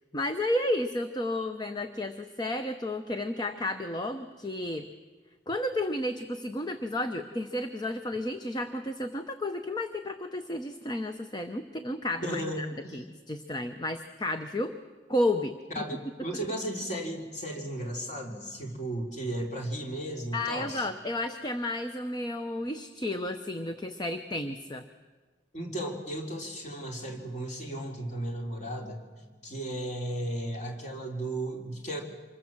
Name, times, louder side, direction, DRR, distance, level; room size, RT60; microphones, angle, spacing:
voice 1, 0.1-4.9 5.5-12.7 12.9-14.7 15.1-15.5 20.3-24.9, left 1 dB, 20° left, 7 dB, 0.8 m, -32 dB
voice 2, 12.2-13.0 15.7-20.9 25.5-29.0 29.4-32.0, right 1 dB, 40° left, 1 dB, 3.4 m, -35 dB
26.0 x 21.5 x 7.4 m, 1.4 s
head